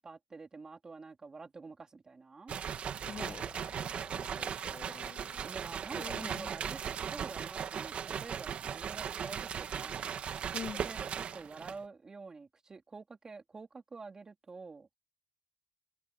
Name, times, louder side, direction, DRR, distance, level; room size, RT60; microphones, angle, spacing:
voice 1, 0.0-2.5 5.4-10.1 10.8-14.9, right 4 dB, 30° right, 2.4 m, -48 dB
sound 1, 2.5-11.8, right 8 dB, 65° right, 1.9 m, -38 dB
voice 2, 3.0-5.5 6.0-6.6 10.5-10.8, left 7 dB, 50° left, 1.1 m, -46 dB
cardioid pair, 125°, 2 cm